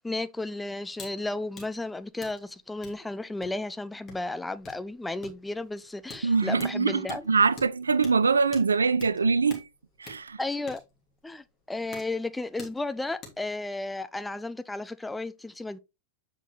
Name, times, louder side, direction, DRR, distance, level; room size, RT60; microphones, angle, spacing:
voice 1, 0.0-7.2 10.4-10.8 11.2-15.8, left 2 dB, 5° left, 0.5 m, -33 dB
sound 1, 0.9-1.1 1.4-13.5, left 4 dB, 30° left, 3.0 m, -49 dB
voice 2, 6.2-9.6 10.0-10.4, right 4 dB, 75° right, 0.4 m, -23 dB
8.1 x 5.9 x 3.2 m
figure-of-eight pair, 90°, 0 cm